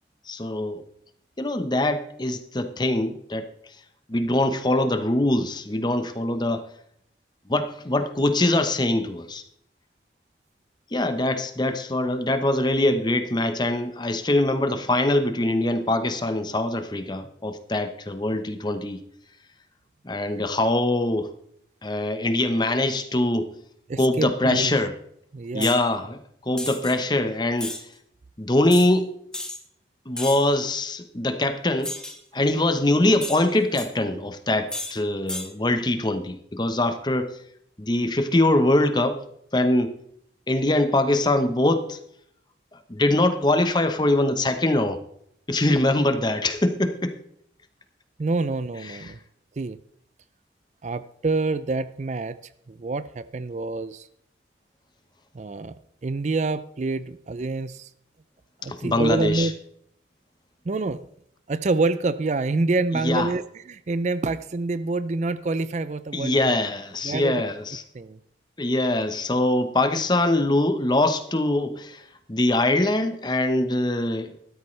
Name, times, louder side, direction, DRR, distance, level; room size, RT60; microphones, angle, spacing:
voice 1, 0.3-0.8 1.4-3.5 4.1-6.6 7.5-9.4 10.9-19.0 20.0-21.3 21.8-23.5 24.0-24.9 25.5-27.8 28.4-29.1 30.1-32.0 32.3-37.3 37.8-39.2 39.5-39.9 40.5-42.0 42.9-45.0 45.5-47.1 48.9-49.1 58.6-59.5 62.9-63.3 66.1-67.8 68.6-72.0 72.3-74.4, left 1 dB, 25° left, 8 dB, 1.0 m, -23 dB
voice 2, 23.9-24.7 25.3-25.8 48.2-49.2 49.6-49.8 50.8-52.4 52.7-54.1 55.3-55.7 56.0-57.9 58.6-59.5 60.7-61.0 61.5-66.6 67.0-67.4 67.9-68.2, right 3 dB, 40° right, 14 dB, 0.4 m, -27 dB
sound 1, 25.6-25.8 26.6-26.9 27.6-27.8 28.7-28.9 29.3-29.6 30.2-30.5 31.8-32.2 33.2-33.9 34.7-34.9 35.3-35.5, left 1 dB, 5° left, 1.1 m, -33 dB
14.0 x 13.0 x 3.3 m, 0.72 s
head